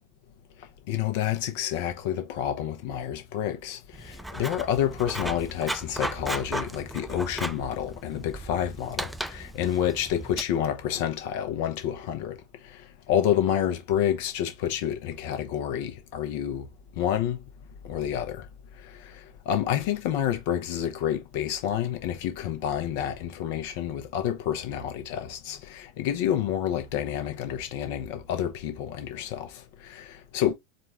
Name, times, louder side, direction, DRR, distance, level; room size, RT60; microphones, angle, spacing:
voice 1, 0.9-12.4 12.7-12.8 13.1-16.7 17.0-17.4 17.8-18.5 18.8-19.2 19.5-30.5, left 10 dB, 55° left, 0.9 m, -29 dB
Writing, 3.9-10.4, right 1 dB, 5° right, 0.4 m, -36 dB
4.4 x 2.6 x 3.4 m
figure-of-eight pair, 85°, 0 cm